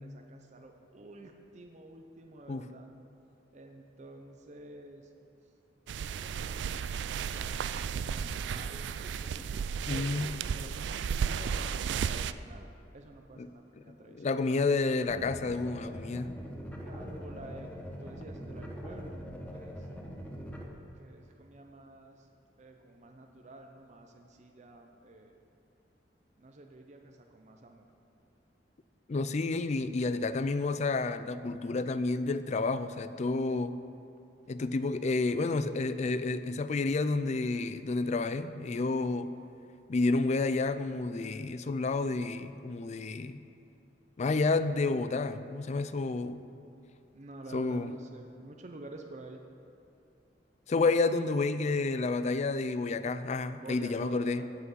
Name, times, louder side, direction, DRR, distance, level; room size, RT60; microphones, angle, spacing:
voice 1, 0.0-2.9 3.5-5.1 6.0-12.7 12.9-14.3 16.8-19.9 21.0-22.3 22.6-25.4 26.4-27.9 47.1-49.4 53.6-54.5, right 2 dB, 40° right, 4 dB, 0.7 m, -50 dB
sound 1, 5.9-12.3, right 7 dB, 70° right, 0.3 m, -34 dB
voice 2, 9.9-10.3 13.4-13.5 14.1-16.3 29.1-33.8 34.5-39.3 39.9-43.4 44.2-46.4 47.5-47.9 50.7-54.4, left 3 dB, 40° left, 12 dB, 0.4 m, -30 dB
sound 2, 15.1-20.6, equal, 10° left, 1.1 m, -42 dB
15.5 x 5.9 x 5.7 m, 2.7 s
head